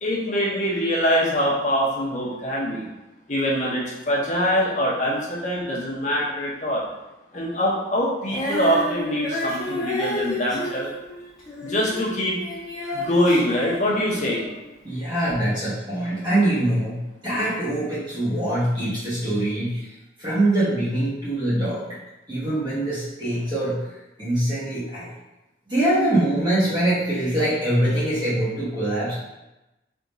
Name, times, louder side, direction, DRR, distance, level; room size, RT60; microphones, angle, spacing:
voice 1, 0.0-2.8 3.3-6.8 7.3-10.9 11.6-12.4 12.9-14.4, equal, 45° left, -4 dB, 0.9 m, -23 dB
Female singing, 8.2-14.6 15.3-15.4, left 1 dB, 20° left, 1.4 m, -30 dB
voice 2, 14.8-19.9 20.2-22.0 22.3-23.9 24.2-25.1 25.7-29.1, right 1 dB, 25° right, -10 dB, 1.1 m, -23 dB
3.6 x 2.8 x 4.0 m, 0.99 s
head